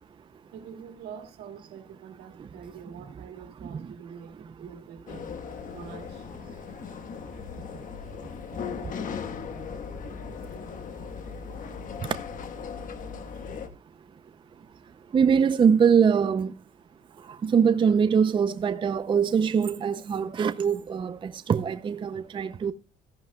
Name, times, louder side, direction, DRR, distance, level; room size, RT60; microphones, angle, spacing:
voice 1, 0.5-5.3 5.7-6.3 7.7-7.8 8.2-8.3, right 7 dB, 80° right, 2.1 m, -45 dB
sound 1, 5.1-13.7, left 6 dB, 50° left, 1.2 m, -38 dB
voice 2, 15.1-16.5 17.4-22.7, right 6 dB, 30° right, 0.5 m, -23 dB
14.0 x 10.5 x 2.2 m
cardioid pair, 110°, 17 cm